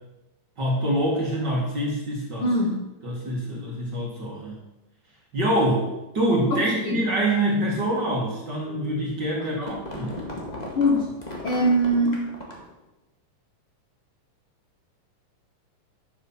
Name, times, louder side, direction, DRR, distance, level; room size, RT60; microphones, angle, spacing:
voice 1, 0.6-2.5 3.0-4.6 5.3-5.9 6.1-10.2, right 1 dB, 35° right, -3 dB, 2.2 m, -25 dB
voice 2, 2.4-2.8 6.5-7.0 9.4-9.5 10.8-11.1 11.4-12.2, equal, 60° left, 0 dB, 1.5 m, -22 dB
sound 1, 9.5-12.8, left 1 dB, 20° left, 1.1 m, -37 dB
11.5 x 7.2 x 5.6 m, 0.95 s
omnidirectional pair, 3.9 m